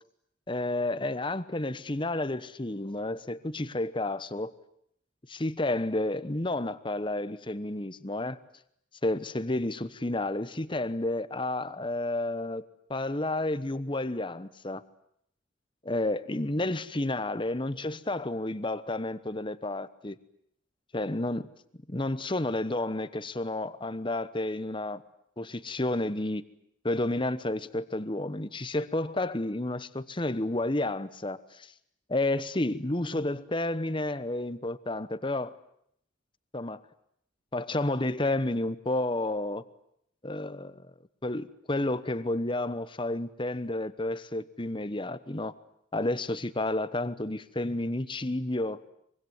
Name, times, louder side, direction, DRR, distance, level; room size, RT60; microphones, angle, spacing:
voice 1, 0.5-4.5 5.3-8.4 9.0-12.6 12.9-14.8 15.8-20.2 20.9-21.5 21.9-25.0 25.4-26.4 26.8-31.7 32.1-35.6 36.5-36.8 37.5-39.6 40.2-40.9 41.2-45.5 45.9-48.8, left 2 dB, 25° left, 1.0 m, -31 dB
24.0 x 23.5 x 9.6 m
head